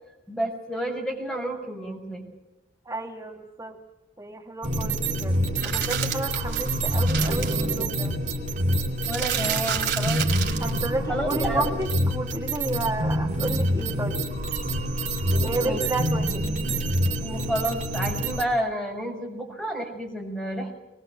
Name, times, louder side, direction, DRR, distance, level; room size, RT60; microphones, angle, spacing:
voice 1, 0.3-2.2 9.1-10.2 11.1-11.7 15.6-15.8 17.2-20.7, right 1 dB, 5° left, 1 dB, 6.6 m, -30 dB
voice 2, 2.8-3.8 4.2-5.4 5.6-8.1 10.6-14.3 15.4-16.5, right 2 dB, 20° right, 0 dB, 1.8 m, -31 dB
sound 1, 4.6-18.4, right 1 dB, 40° right, 3.4 m, -26 dB
sound 2, 5.6-7.6 9.0-10.8 11.8-11.9, right 8 dB, 55° right, 3.5 m, -30 dB
23.0 x 22.5 x 8.1 m, 0.97 s
head